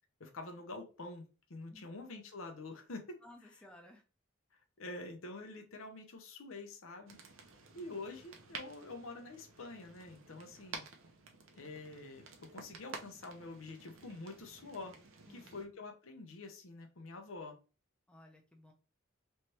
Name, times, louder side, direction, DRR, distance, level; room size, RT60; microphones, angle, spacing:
voice 1, 0.2-3.2 4.8-7.2 7.7-10.8 11.6-15.0 15.3-17.6, left 2 dB, 80° left, 0.8 m, -47 dB
voice 2, 1.7-2.0 3.2-4.0 15.3-15.7 18.1-18.7, left 1 dB, 5° left, 0.6 m, -58 dB
sound 1, 7.1-15.7, right 4 dB, 80° right, 0.8 m, -52 dB
3.3 x 3.1 x 2.8 m
head